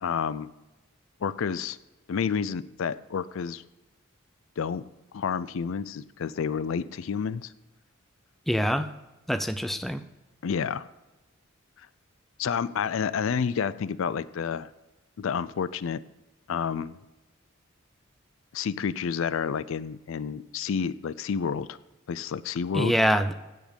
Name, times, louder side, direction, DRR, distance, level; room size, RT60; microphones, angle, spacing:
voice 1, 0.0-0.5 1.2-1.8 2.1-3.6 4.6-4.8 5.1-7.5 10.4-10.9 12.4-14.7 15.2-16.0 16.5-17.0 18.5-21.8 22.1-22.9, left 6 dB, 65° left, 16 dB, 0.4 m, -29 dB
voice 2, 8.5-8.9 9.3-10.0 22.7-23.3, equal, ahead, 9 dB, 0.4 m, -24 dB
15.0 x 5.1 x 5.2 m, 1.1 s
head